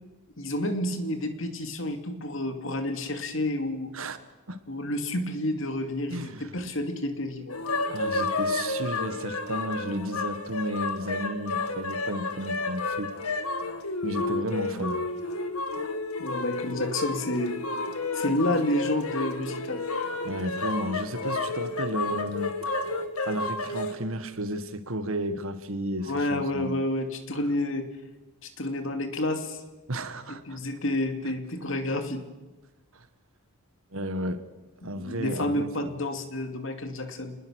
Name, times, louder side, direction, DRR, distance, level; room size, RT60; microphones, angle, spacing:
voice 1, 0.4-3.9 4.7-7.6 14.8-14.9 16.2-17.6 18.1-19.8 26.1-27.9 28.4-29.6 30.3-32.2 34.8-37.4, left 1 dB, 60° left, 6 dB, 2.6 m, -30 dB
voice 2, 6.1-6.5 7.9-13.1 13.5-13.6 14.0-15.0 20.2-22.7 23.2-26.8 29.9-30.6 32.9-33.1 33.9-34.4 34.8-35.9, right 1 dB, 65° right, 10 dB, 1.7 m, -33 dB
sound 1, 7.5-23.9, left 3 dB, 80° left, 2.0 m, -31 dB
28.5 x 20.5 x 6.5 m, 1.1 s
head